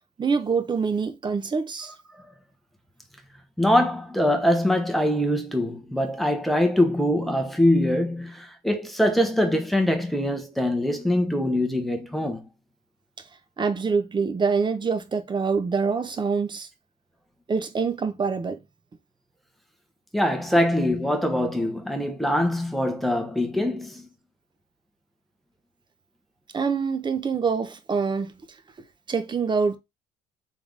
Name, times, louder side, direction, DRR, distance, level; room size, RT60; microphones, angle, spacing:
voice 1, 0.2-1.9 13.6-16.7 17.5-18.6 20.5-20.6 26.5-28.3 29.1-29.8, right 5 dB, 25° right, 0.7 m, -25 dB
voice 2, 3.6-12.5 20.1-24.1, left 1 dB, ahead, 0.9 m, -23 dB
3.7 x 3.5 x 3.4 m
cardioid pair, 110°, 17 cm